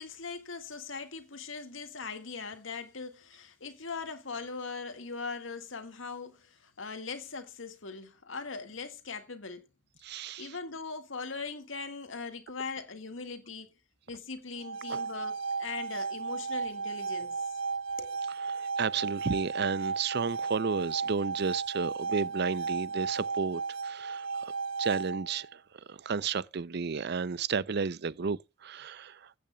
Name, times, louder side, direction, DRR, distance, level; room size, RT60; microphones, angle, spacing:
voice 1, 0.0-9.6 10.4-13.7 14.1-17.6 18.0-18.2, left 4 dB, 85° left, 1.8 m, -40 dB
voice 2, 10.0-10.5 14.9-15.0 18.5-24.5 24.8-25.5 25.9-29.2, right 5 dB, 55° right, 0.5 m, -32 dB
sound 1, 14.5-25.5, right 5 dB, 85° right, 0.8 m, -34 dB
15.5 x 8.7 x 2.3 m
head